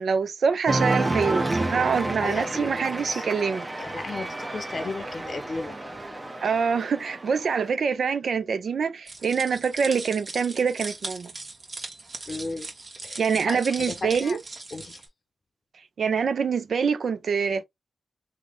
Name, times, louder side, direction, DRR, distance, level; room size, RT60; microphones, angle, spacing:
voice 1, 0.0-3.7 6.4-11.3 13.2-14.4 16.0-17.6, right 6 dB, 75° right, 0.3 m, -25 dB
Cheering, 0.7-7.7, right 2 dB, 30° right, 0.7 m, -30 dB
voice 2, 2.2-3.3 3.8-5.8 12.3-12.7 13.0-14.4 14.7-15.0, left 3 dB, 55° left, 0.6 m, -35 dB
sound 1, 9.1-15.0, right 3 dB, 55° right, 1.1 m, -39 dB
3.0 x 2.1 x 3.8 m
supercardioid pair, 40°, 0 cm